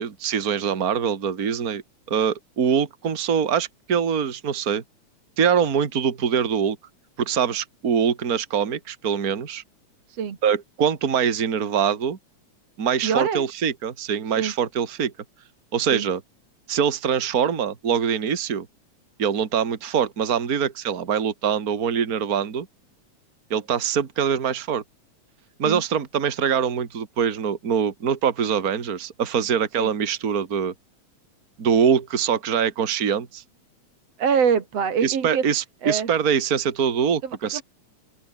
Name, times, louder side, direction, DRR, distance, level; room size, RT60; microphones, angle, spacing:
voice 1, 0.0-4.8 5.4-6.8 7.2-9.6 10.4-12.2 12.8-15.1 15.7-16.2 16.7-18.7 19.2-22.7 23.5-24.8 25.6-30.7 31.6-33.4 35.0-37.6, right 7 dB, 35° right, 2.3 m, -23 dB
voice 2, 13.0-13.4 14.4-14.5 15.9-16.1 25.6-25.8 29.8-29.9 34.2-35.4 35.8-36.1 37.5-37.6, right 6 dB, 60° right, 3.3 m, -24 dB
open air
omnidirectional pair, 3.3 m